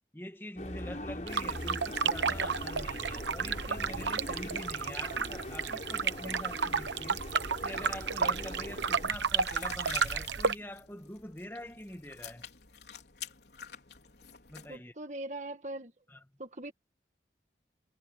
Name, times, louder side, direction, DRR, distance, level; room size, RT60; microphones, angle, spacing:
voice 1, 0.1-7.2 7.6-12.5 14.5-14.9 16.1-16.2, left 1 dB, 10° left, 1.5 m, -44 dB
sound 1, 0.6-9.1, left 1 dB, 45° left, 5.9 m, -42 dB
sound 2, 1.3-10.5, right 6 dB, 85° right, 1.0 m, -32 dB
sound 3, 9.1-14.8, left 9 dB, 70° left, 4.2 m, -47 dB
voice 2, 14.7-15.9 16.4-16.7, right 2 dB, 40° right, 1.7 m, -40 dB
head